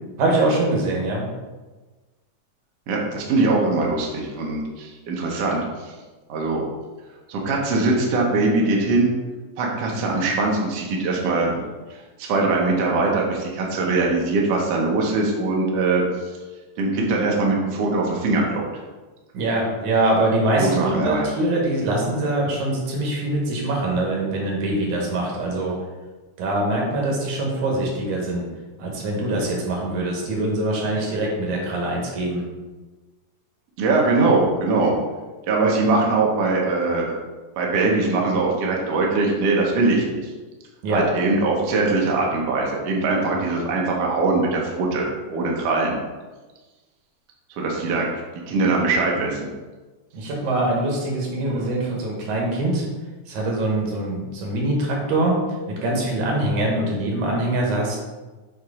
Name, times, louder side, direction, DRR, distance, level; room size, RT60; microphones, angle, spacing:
voice 1, 0.2-1.3 19.3-25.8 26.4-28.5 28.8-32.4 40.8-41.0 50.1-52.9 53.3-55.4 55.7-58.0, right 2 dB, 90° right, -2 dB, 2.7 m, -23 dB
voice 2, 2.9-5.9 6.3-6.6 7.3-9.1 9.6-11.6 11.9-16.0 16.8-18.6 20.6-21.3 33.8-34.9 35.5-37.1 37.6-40.2 40.9-46.0 47.6-48.1 48.5-49.5 51.5-51.7, right 3 dB, 65° right, -1 dB, 1.8 m, -22 dB
7.5 x 2.7 x 4.8 m, 1.2 s
omnidirectional pair, 3.4 m